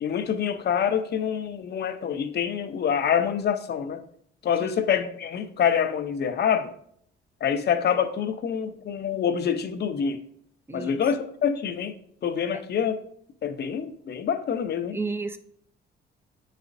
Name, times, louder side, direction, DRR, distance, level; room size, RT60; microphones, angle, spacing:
voice 1, 0.0-4.0 4.4-6.7 7.4-10.2 10.7-11.9 12.2-13.0 13.4-15.0, left 8 dB, 55° left, 8 dB, 0.7 m, -26 dB
voice 2, 10.7-11.0 12.5-12.6 14.9-15.4, right 3 dB, 10° right, 9 dB, 0.5 m, -32 dB
9.0 x 4.1 x 2.6 m, 0.66 s
cardioid pair, 90°, 20 cm